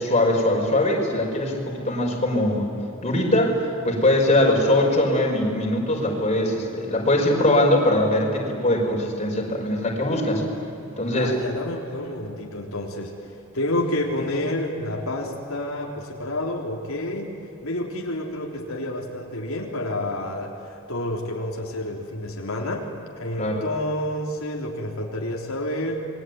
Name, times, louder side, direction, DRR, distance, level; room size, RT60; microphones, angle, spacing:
voice 1, 0.0-2.7 3.0-3.6 3.8-10.4 11.0-11.3 23.4-23.6, left 1 dB, 30° left, -1 dB, 5.6 m, -21 dB
voice 2, 11.1-13.2 13.5-26.0, left 1 dB, 90° left, -1 dB, 3.7 m, -29 dB
27.5 x 22.0 x 9.6 m, 3.0 s
head